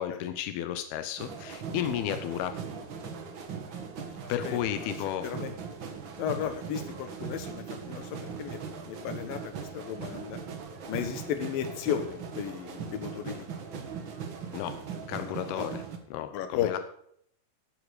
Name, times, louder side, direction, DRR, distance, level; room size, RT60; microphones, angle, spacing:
voice 1, 0.0-2.6 4.3-5.3 14.5-14.8 15.1-15.8 16.1-16.8, left 11 dB, 85° left, 9 dB, 2.8 m, -33 dB
sound 1, 1.2-16.0, right 6 dB, 65° right, 1.2 m, -39 dB
voice 2, 5.2-5.5 6.2-8.0 8.4-8.6 8.9-9.4 9.7-10.4 10.9-13.4 15.2-15.7 16.3-16.7, left 9 dB, 70° left, 8 dB, 2.9 m, -34 dB
14.5 x 8.6 x 5.0 m, 0.66 s
omnidirectional pair, 4.4 m